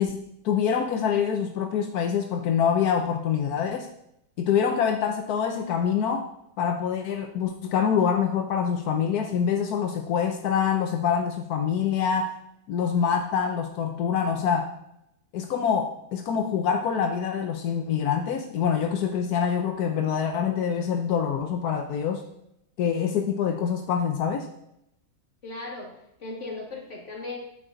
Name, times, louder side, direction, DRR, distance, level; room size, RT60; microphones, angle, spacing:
voice 1, 0.0-3.9 4.4-6.3 6.6-12.3 12.7-14.7 15.3-22.2 22.8-24.5, left 7 dB, 90° left, 5 dB, 1.3 m, -25 dB
voice 2, 25.4-25.9 26.2-27.4, left 3 dB, 55° left, -1 dB, 2.9 m, -36 dB
13.0 x 9.6 x 4.0 m, 0.80 s
omnidirectional pair, 1.6 m